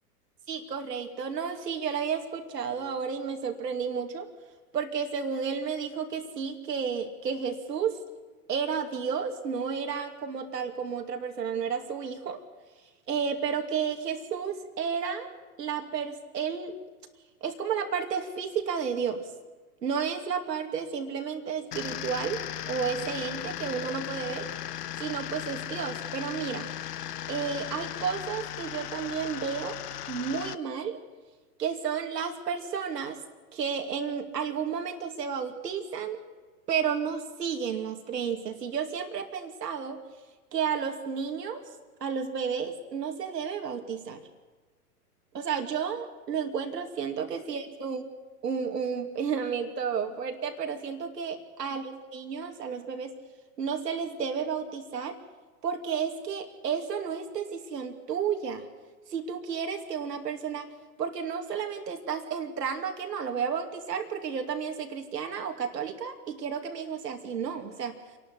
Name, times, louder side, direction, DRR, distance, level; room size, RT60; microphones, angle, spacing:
voice 1, 0.5-4.3 4.7-8.0 8.5-12.4 13.1-15.3 15.6-16.8 17.4-19.3 19.8-24.5 25.0-26.7 27.3-29.8 30.1-31.0 31.6-33.2 33.5-36.2 36.7-40.0 40.5-41.6 42.0-44.2 45.3-48.0 48.4-53.1 53.6-55.2 55.6-58.6 59.1-60.7 61.0-68.0, right 6 dB, 85° right, 4 dB, 2.7 m, -32 dB
sound 1, 21.7-30.5, left 12 dB, 75° left, 0.9 m, -37 dB
27.0 x 11.5 x 8.4 m, 1.3 s
hypercardioid pair, 125°, 48 cm